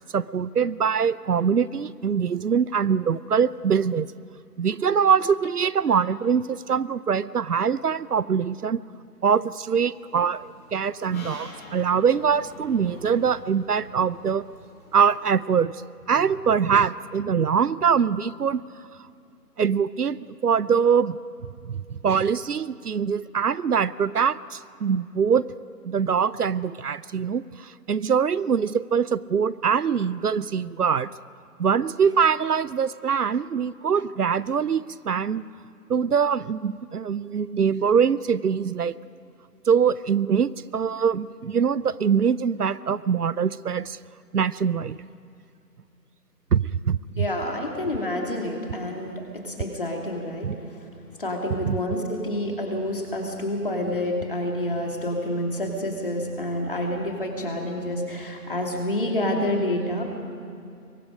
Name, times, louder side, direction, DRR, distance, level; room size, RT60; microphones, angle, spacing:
voice 1, 0.1-4.1 4.6-8.8 9.2-14.5 14.9-15.7 16.1-18.6 19.6-21.2 21.7-25.4 25.9-31.1 31.6-35.4 35.9-38.9 39.7-44.0 44.3-45.0 46.5-47.0 50.4-50.6 51.6-51.8, right 7 dB, 70° right, 19 dB, 0.6 m, -23 dB
sound 1, 9.9-15.4, left 1 dB, 10° left, 4.0 m, -45 dB
voice 2, 47.1-50.8 51.2-60.0, left 1 dB, 35° left, 1 dB, 2.6 m, -28 dB
27.5 x 23.0 x 5.3 m, 2.5 s
figure-of-eight pair, 175°, 48 cm